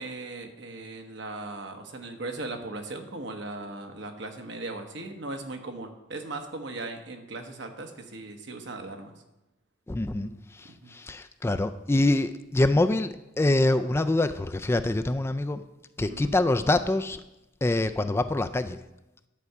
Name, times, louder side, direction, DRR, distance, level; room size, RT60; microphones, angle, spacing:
voice 1, 0.0-9.1 10.2-10.4 10.7-10.9 16.1-16.3, right 2 dB, 65° right, 4 dB, 1.2 m, -38 dB
voice 2, 9.9-15.6 16.0-17.2 17.6-18.8, left 2 dB, 15° left, 9 dB, 0.3 m, -25 dB
11.0 x 4.7 x 6.7 m, 0.94 s
head